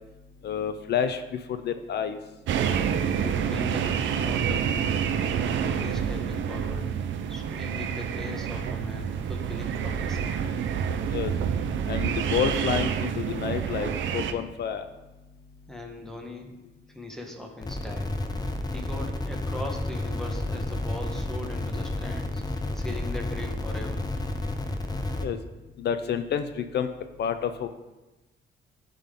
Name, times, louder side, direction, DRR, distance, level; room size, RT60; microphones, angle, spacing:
voice 1, 0.4-2.2 11.1-11.3 11.9-14.8 25.2-25.4 25.8-26.9 27.2-27.7, left 8 dB, 55° left, 9 dB, 0.5 m, -29 dB
sound 1, 2.5-14.3, right 7 dB, 75° right, 0.6 m, -28 dB
voice 2, 3.1-5.1 5.6-6.9 7.3-10.3 15.7-16.5 16.9-18.1 18.7-24.0, left 1 dB, ahead, 2 dB, 1.2 m, -40 dB
sound 2, 17.6-25.2, left 2 dB, 20° left, 0.7 m, -31 dB
11.0 x 3.8 x 3.7 m, 1.1 s
cardioid pair, 90°, 20 cm